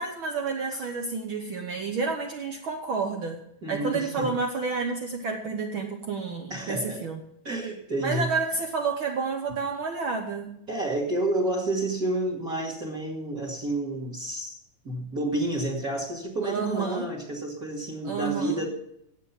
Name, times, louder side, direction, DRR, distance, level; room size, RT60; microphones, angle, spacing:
voice 1, 0.0-3.4 3.7-7.2 8.0-10.5 16.4-17.1 18.0-18.7, right 4 dB, 80° right, 2 dB, 1.1 m, -30 dB
voice 2, 3.6-4.3 6.5-7.0 7.4-8.3 10.7-14.6 14.8-18.7, right 1 dB, 30° right, 1 dB, 2.1 m, -30 dB
17.5 x 8.0 x 5.7 m, 0.75 s
omnidirectional pair, 3.9 m